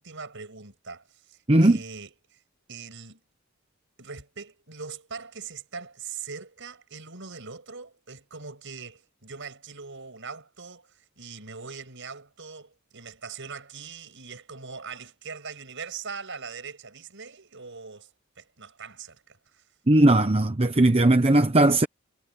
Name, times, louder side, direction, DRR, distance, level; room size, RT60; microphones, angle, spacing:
voice 1, 0.0-2.4 2.7-3.2 4.0-18.1 18.4-19.6, right 5 dB, 60° right, 7.3 m, -41 dB
voice 2, 19.9-21.9, right 1 dB, 25° right, 1.0 m, -18 dB
head